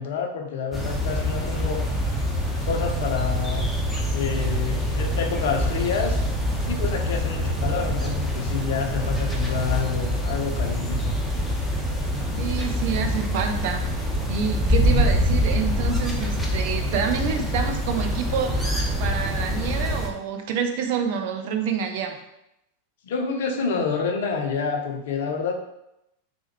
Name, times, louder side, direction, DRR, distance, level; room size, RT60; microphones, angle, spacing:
voice 1, 0.0-1.8 2.6-3.7 4.1-6.2 6.7-11.1 23.0-25.6, left 5 dB, 55° left, 3 dB, 0.4 m, -28 dB
sound 1, 0.7-20.1, equal, 5° left, 0.5 m, -25 dB
voice 2, 12.4-13.8 14.3-18.7 19.0-22.2, right 6 dB, 50° right, 4 dB, 0.4 m, -27 dB
3.3 x 2.1 x 2.9 m, 0.85 s
figure-of-eight pair, 90°, 0 cm